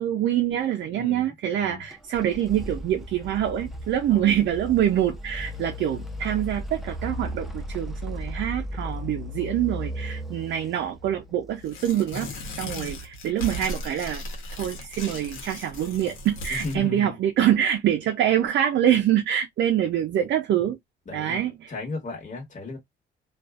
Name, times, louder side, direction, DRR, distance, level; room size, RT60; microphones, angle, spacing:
voice 1, 0.0-12.3 12.6-14.2 14.5-20.8 21.1-21.7, right 11 dB, 65° right, 0.5 m, -25 dB
voice 2, 0.9-1.8 4.1-4.3 12.7-13.0 16.5-17.2 21.1-21.4 21.7-22.8, left 3 dB, 40° left, 1.3 m, -35 dB
sound 1, 1.9-12.7, equal, ahead, 0.6 m, -36 dB
Tearing, 11.6-16.8, left 1 dB, 85° left, 0.9 m, -36 dB
2.4 x 2.3 x 2.3 m
cardioid pair, 90°, 20 cm